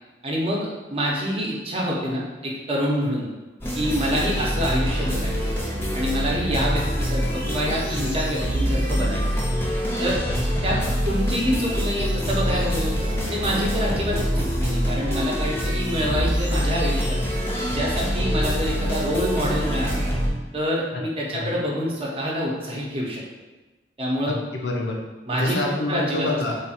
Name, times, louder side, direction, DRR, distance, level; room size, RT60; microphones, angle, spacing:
voice 1, 0.2-3.3 3.8-5.4 5.9-9.2 10.0-10.2 10.6-10.8 11.0-17.2 17.7-20.0 20.5-23.2 24.0-24.4 25.3-25.6 25.9-26.3, equal, 30° right, -3 dB, 0.7 m, -26 dB
sound 1, 3.6-20.3, equal, 15° left, 0.5 m, -25 dB
voice 2, 10.7-11.0 20.9-21.0 21.3-21.6 24.3-25.0 25.3-26.7, left 2 dB, 85° left, 0 dB, 0.6 m, -27 dB
3.3 x 2.4 x 4.2 m, 1.2 s
head